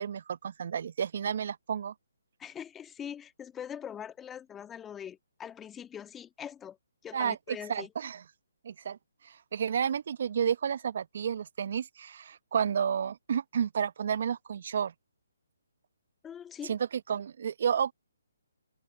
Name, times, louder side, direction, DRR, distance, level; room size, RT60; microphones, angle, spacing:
voice 1, 0.0-1.9 7.1-8.2 8.6-9.0 9.2-14.9 16.6-17.9, right 7 dB, 55° right, 0.9 m, -31 dB
voice 2, 2.4-6.8 7.0-7.9 16.2-16.8, left 9 dB, 10° left, 1.6 m, -42 dB
open air
figure-of-eight pair, 145°, 0 cm